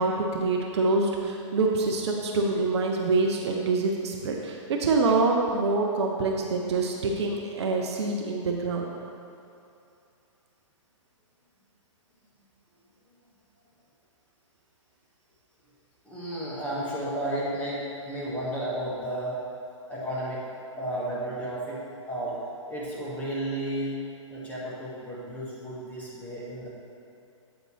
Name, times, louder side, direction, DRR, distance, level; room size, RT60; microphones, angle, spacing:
voice 1, 0.0-9.0, right 3 dB, 55° right, 1 dB, 0.7 m, -26 dB
voice 2, 16.0-19.4 19.9-20.4 20.7-22.4 22.7-24.0 24.3-26.7, right 1 dB, 10° left, -8 dB, 1.6 m, -33 dB
8.1 x 5.1 x 3.2 m, 2.6 s
hypercardioid pair, 125°, 16 cm